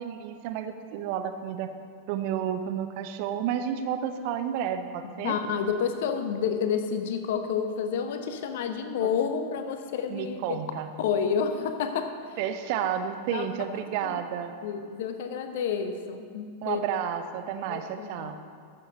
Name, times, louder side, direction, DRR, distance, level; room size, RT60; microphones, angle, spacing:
voice 1, 0.0-1.7 2.1-5.4 9.0-9.1 10.1-10.9 12.4-14.5 16.6-18.4, right 9 dB, 45° right, 8 dB, 0.7 m, -31 dB
voice 2, 5.0-10.6 11.0-12.4 13.3-13.5 14.0-14.1 14.6-16.8 17.7-18.3, left 7 dB, 55° left, 8 dB, 0.9 m, -30 dB
14.0 x 6.9 x 5.2 m, 2.1 s
figure-of-eight pair, 90°, 0 cm